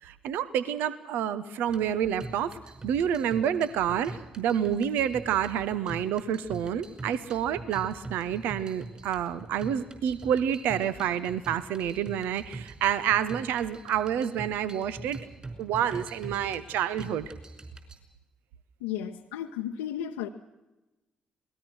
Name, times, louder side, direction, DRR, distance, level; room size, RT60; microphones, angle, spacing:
voice 1, 0.0-15.2 15.6-17.3, right 9 dB, 65° right, 14 dB, 1.1 m, -28 dB
sound 1, 1.7-18.0, right 3 dB, 25° right, 5.4 m, -44 dB
voice 2, 18.8-20.3, left 10 dB, 75° left, 1 dB, 0.9 m, -34 dB
27.0 x 19.5 x 6.3 m, 1.0 s
figure-of-eight pair, 45°, 4 cm